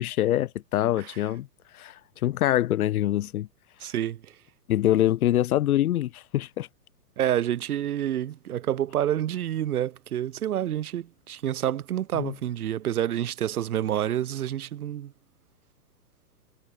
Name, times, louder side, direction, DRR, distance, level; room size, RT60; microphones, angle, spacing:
voice 1, 0.0-1.5 1.7-3.5 4.7-6.7 12.2-12.3, left 13 dB, 60° left, 0.6 m, -25 dB
voice 2, 3.8-4.4 7.2-15.1, right 11 dB, 60° right, 2.6 m, -28 dB
hypercardioid pair, 165°, 50 cm